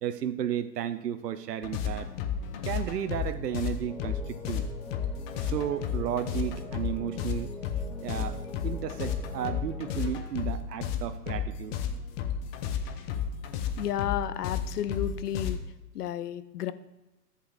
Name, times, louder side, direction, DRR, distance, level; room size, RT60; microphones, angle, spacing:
voice 1, 0.0-2.1 2.6-4.8 5.4-7.5 8.0-11.7, right 10 dB, 75° right, 11 dB, 0.7 m, -33 dB
sound 1, 1.6-15.6, left 7 dB, 35° left, 1.0 m, -33 dB
sound 2, 3.8-10.0, left 2 dB, 5° left, 0.5 m, -45 dB
voice 2, 13.8-15.6 15.9-16.7, left 10 dB, 70° left, 14 dB, 0.7 m, -32 dB
14.0 x 8.3 x 2.5 m, 1.1 s
figure-of-eight pair, 105°, 49 cm